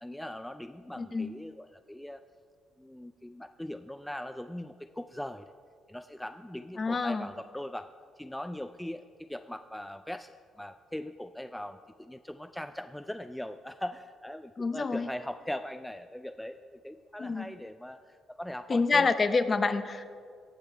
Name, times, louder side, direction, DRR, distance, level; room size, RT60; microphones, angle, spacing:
voice 1, 0.0-2.2 2.8-5.5 5.9-7.9 8.2-19.1, left 1 dB, 5° left, 9 dB, 0.3 m, -40 dB
voice 2, 1.0-1.3 6.8-7.3 14.6-15.1 17.2-17.5 18.7-20.0, left 4 dB, 35° left, 11 dB, 0.7 m, -27 dB
18.0 x 6.7 x 4.5 m, 2.1 s
cardioid pair, 90°, 0 cm